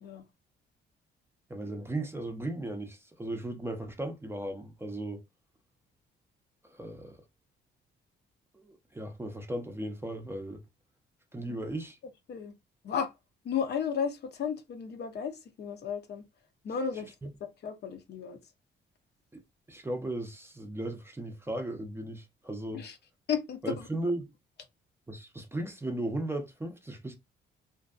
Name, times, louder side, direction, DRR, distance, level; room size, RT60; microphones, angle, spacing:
voice 1, 1.5-5.2 6.6-7.2 8.5-10.6 11.3-12.0 17.2-17.3 19.3-19.4 19.7-22.9 23.6-24.3 25.1-27.1, right 1 dB, 10° right, 0.5 m, -36 dB
voice 2, 13.4-16.2 16.6-17.1 17.4-18.4 22.7-23.0 23.3-23.9, left 7 dB, 55° left, 0.6 m, -34 dB
2.6 x 2.2 x 2.4 m
cardioid pair, 90°, 20 cm